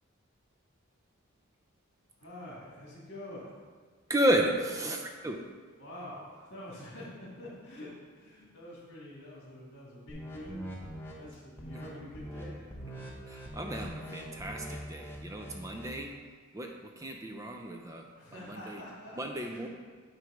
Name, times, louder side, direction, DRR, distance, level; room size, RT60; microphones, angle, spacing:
voice 1, 2.2-3.5 5.8-10.7 11.2-13.0 18.2-19.7, left 1 dB, 55° left, -5 dB, 2.2 m, -46 dB
voice 2, 4.1-5.4 13.3-16.1 16.5-18.1 18.3-18.8 19.1-19.7, right 1 dB, 15° right, 3 dB, 0.4 m, -33 dB
sound 1, 10.1-11.1 11.6-11.9 12.1-12.4 12.7-16.0, equal, 10° left, 0.8 m, -43 dB
9.2 x 3.2 x 5.0 m, 1.5 s
head